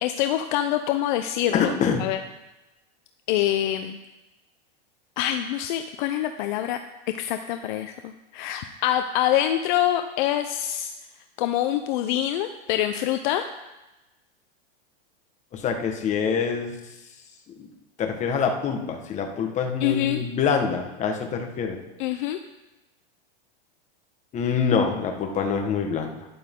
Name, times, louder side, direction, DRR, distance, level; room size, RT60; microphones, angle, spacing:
voice 1, 0.0-1.7 2.0-2.2 3.3-4.0 5.2-6.8 7.2-10.9 11.4-13.5 19.8-20.2 22.0-22.4, left 12 dB, 55° left, 7 dB, 0.7 m, -25 dB
voice 2, 1.5-2.1 15.5-16.8 17.6-17.7 18.0-21.8 24.3-26.3, left 6 dB, 25° left, 3 dB, 1.5 m, -25 dB
12.5 x 10.5 x 3.8 m, 1.0 s
supercardioid pair, 150°, 30 cm